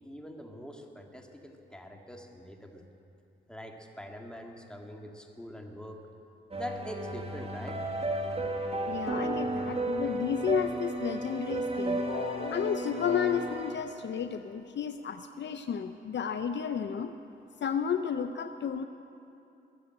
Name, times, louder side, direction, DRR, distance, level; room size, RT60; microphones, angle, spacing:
voice 1, 0.0-2.8 3.5-6.0 6.6-7.8, equal, 5° left, 2 dB, 2.1 m, -43 dB
sound 1, 6.5-13.7, right 2 dB, 30° right, 2.0 m, -33 dB
voice 2, 8.9-17.1 17.6-18.8, left 7 dB, 60° left, 9 dB, 0.6 m, -32 dB
22.0 x 7.8 x 7.8 m, 2.7 s
cardioid pair, 65°, 21 cm